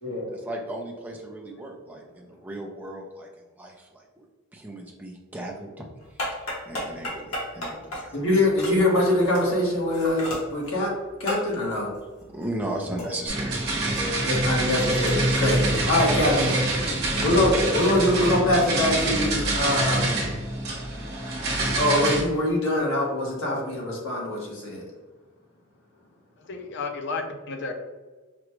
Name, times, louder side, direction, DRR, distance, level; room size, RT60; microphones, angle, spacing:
voice 1, 0.3-3.3 3.5-4.0 4.5-5.9 6.7-8.3 12.3-13.7 16.9-17.3, right 1 dB, 10° right, -1 dB, 0.5 m, -36 dB
sound 1, 6.0-13.5 13.8-16.2, equal, 90° left, 1.3 m, -36 dB
voice 2, 8.1-10.2 10.5-10.9 11.2-11.9 14.2-16.8 17.2-20.2 21.7-24.8, left 1 dB, 70° left, -3 dB, 1.3 m, -23 dB
sound 2, 13.3-22.2, right 2 dB, 50° right, 1.0 m, -25 dB
voice 3, 26.5-27.7, left 4 dB, 55° left, 4 dB, 0.5 m, -32 dB
5.0 x 2.3 x 3.0 m, 1.3 s
head